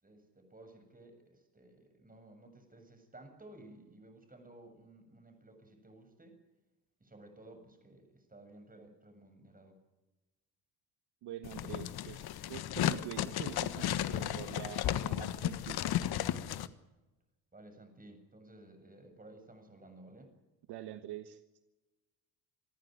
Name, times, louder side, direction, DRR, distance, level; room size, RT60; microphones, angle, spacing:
voice 1, 0.0-6.4 7.0-9.8 17.5-20.3, right 1 dB, 20° right, 6 dB, 7.6 m, -55 dB
voice 2, 11.2-15.8 20.7-21.6, right 12 dB, 65° right, 11 dB, 1.4 m, -45 dB
sound 1, 11.4-16.7, left 11 dB, 60° left, 1.4 m, -34 dB
26.5 x 14.5 x 9.4 m, 1.1 s
hypercardioid pair, 60°, 43 cm